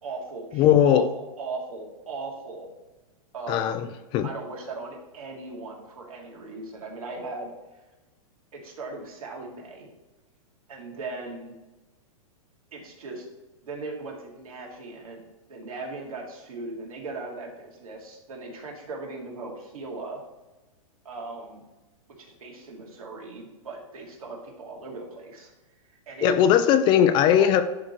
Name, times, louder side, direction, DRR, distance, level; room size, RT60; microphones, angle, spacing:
voice 1, 0.0-2.7 3.3-3.7 4.2-7.5 8.5-9.9 10.7-11.5 12.7-13.2 13.6-15.2 15.5-20.2 21.0-21.6 22.2-25.5 26.1-26.4 27.4-27.6, right 3 dB, 85° right, -1 dB, 2.4 m, -38 dB
voice 2, 0.5-1.1 3.5-4.3 26.2-27.6, left 9 dB, 25° left, 10 dB, 0.4 m, -19 dB
10.5 x 3.8 x 3.1 m, 1.1 s
hypercardioid pair, 145°, 18 cm